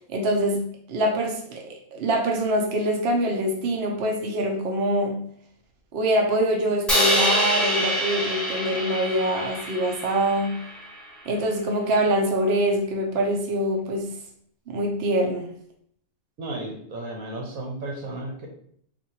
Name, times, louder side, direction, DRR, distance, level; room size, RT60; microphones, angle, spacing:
voice 1, 0.1-0.6 0.9-5.2 5.9-10.6 11.3-14.1 14.7-15.5, right 1 dB, 55° right, 1 dB, 0.8 m, -24 dB
Crash cymbal, 6.9-11.1, equal, ahead, 0.6 m, -25 dB
voice 2, 16.4-18.5, right 2 dB, 75° right, 1 dB, 1.2 m, -34 dB
4.1 x 2.6 x 2.8 m, 0.63 s
omnidirectional pair, 1.5 m